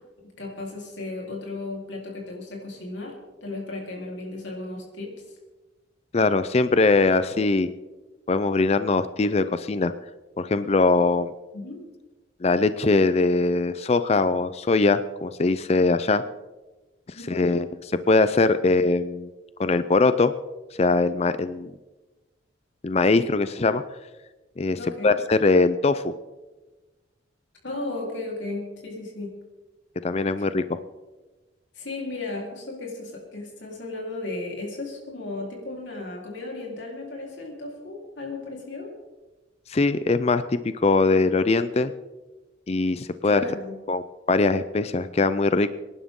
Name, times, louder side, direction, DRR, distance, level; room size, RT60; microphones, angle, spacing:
voice 1, 0.4-3.2 3.4-5.1 11.5-11.8 17.2-17.4 24.8-25.2 27.6-29.4 30.4-30.5 31.7-38.9 43.2-43.8, left 2 dB, 75° left, -1 dB, 3.8 m, -35 dB
voice 2, 6.1-7.7 8.3-9.9 10.4-11.3 12.4-16.2 17.3-17.7 18.1-19.3 19.6-20.3 20.8-21.7 22.8-23.8 24.6-24.8 25.0-26.1 30.0-30.8 39.7-41.9 42.7-43.4 43.9-44.0 44.3-45.7, left 3 dB, 35° left, 12 dB, 0.5 m, -21 dB
24.0 x 11.0 x 3.7 m, 1.1 s
head